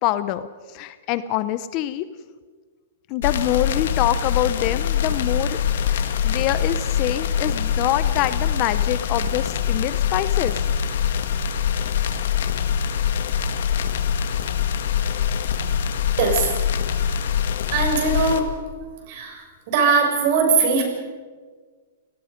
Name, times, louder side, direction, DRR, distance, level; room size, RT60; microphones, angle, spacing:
voice 1, 0.0-2.1 3.1-5.6 5.9-10.6, left 13 dB, 35° left, 14 dB, 0.8 m, -25 dB
sound 1, 3.2-18.4, left 8 dB, 70° left, 1.9 m, -24 dB
voice 2, 17.7-18.5 19.1-19.4 19.7-20.8, right 4 dB, 45° right, 3 dB, 6.3 m, -20 dB
29.0 x 18.5 x 5.3 m, 1.5 s
hypercardioid pair, 155°, 0 cm